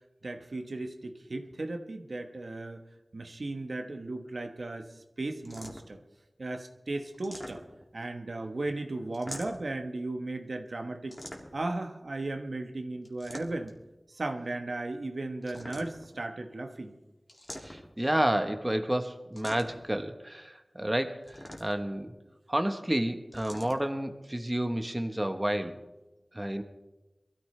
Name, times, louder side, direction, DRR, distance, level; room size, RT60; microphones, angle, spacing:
voice 1, 0.2-2.8 3.1-6.0 6.4-7.6 7.9-11.2 11.5-13.7 14.1-17.0, right 2 dB, 75° right, 5 dB, 1.1 m, -36 dB
sound 1, 5.4-6.0 7.1-8.0 9.1-9.8 11.1-11.7 13.0-13.8 15.4-16.2 17.3-18.1 19.4-19.9 21.2-22.0 23.3-23.8, equal, 20° left, 2.3 m, -45 dB
voice 2, 17.6-22.1 22.5-25.8 26.3-26.6, right 1 dB, 20° right, 7 dB, 1.1 m, -30 dB
23.0 x 13.5 x 3.3 m, 1.0 s
wide cardioid pair, 60°, 0 cm